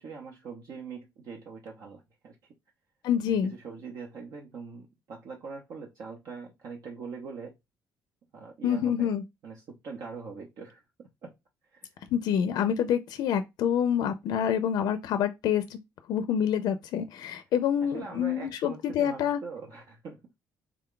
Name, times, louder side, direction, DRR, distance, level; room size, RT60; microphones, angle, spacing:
voice 1, 0.0-2.4 3.3-7.5 8.3-9.1 9.4-11.3 11.7-11.9 17.8-20.2, right 5 dB, 60° right, 0.7 m, -42 dB
voice 2, 3.0-3.5 8.6-9.2 12.1-15.8 16.1-19.4, left 9 dB, 70° left, 0.4 m, -27 dB
3.5 x 2.2 x 3.7 m
cardioid pair, 135°, 7 cm